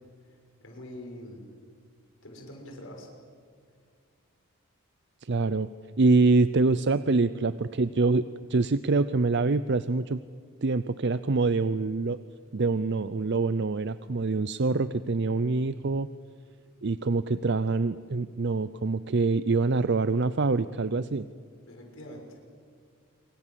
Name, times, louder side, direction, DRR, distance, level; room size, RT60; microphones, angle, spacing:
voice 1, 0.6-1.4 2.2-3.1 21.7-22.4, left 1 dB, 60° left, 2 dB, 6.3 m, -44 dB
voice 2, 5.2-5.7 6.0-8.2 8.5-10.2 10.6-12.2 12.5-16.1 16.8-21.3, right 3 dB, 50° right, 14 dB, 0.6 m, -25 dB
27.0 x 25.5 x 7.6 m, 2.1 s
head